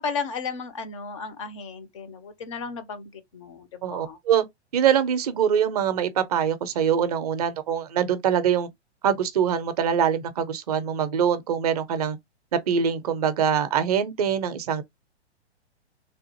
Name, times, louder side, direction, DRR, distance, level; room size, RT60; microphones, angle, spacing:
voice 1, 0.0-4.2, left 5 dB, 30° left, 0.4 m, -34 dB
voice 2, 3.8-4.4 4.7-8.7 9.0-12.2 12.5-14.8, right 8 dB, 35° right, 0.5 m, -23 dB
3.3 x 2.4 x 2.7 m
figure-of-eight pair, 110°, 34 cm